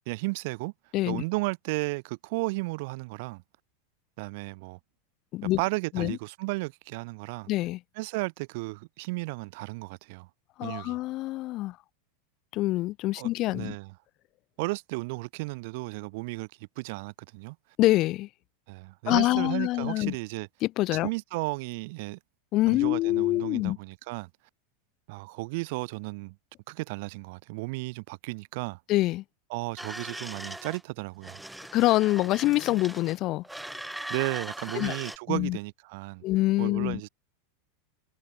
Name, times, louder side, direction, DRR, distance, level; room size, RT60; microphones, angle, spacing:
voice 1, 0.1-0.7 1.1-3.4 4.2-4.8 5.6-7.5 8.0-10.3 10.6-11.0 13.2-13.9 14.6-17.6 18.7-20.5 21.0-22.2 22.7-24.3 25.1-26.4 26.7-28.8 29.5-31.4 34.1-36.2 36.6-37.1, right 25 dB, 60° right, 1.6 m, -34 dB
voice 2, 7.5-7.8 10.6-11.8 12.5-13.8 17.8-18.3 19.1-20.2 20.6-21.1 22.5-23.8 28.9-29.2 31.7-33.4 34.7-34.9 35.3-35.6 36.2-37.0, left 17 dB, 40° left, 1.2 m, -25 dB
sound 1, 29.8-30.8 31.2-33.2 33.4-35.2, right 1 dB, 5° right, 2.7 m, -40 dB
supercardioid pair, 135°, 0 cm